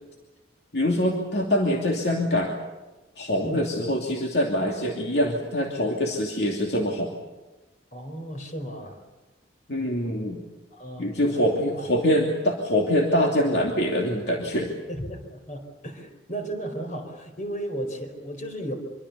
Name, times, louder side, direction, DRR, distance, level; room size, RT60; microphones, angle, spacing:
voice 1, 0.7-2.6 3.2-7.1 9.7-10.4 11.0-14.7, equal, 65° left, 0 dB, 2.8 m, -24 dB
voice 2, 7.9-9.0 10.7-11.9 14.9-18.7, right 1 dB, 45° left, 6 dB, 4.6 m, -35 dB
25.5 x 24.5 x 7.0 m, 1.1 s
head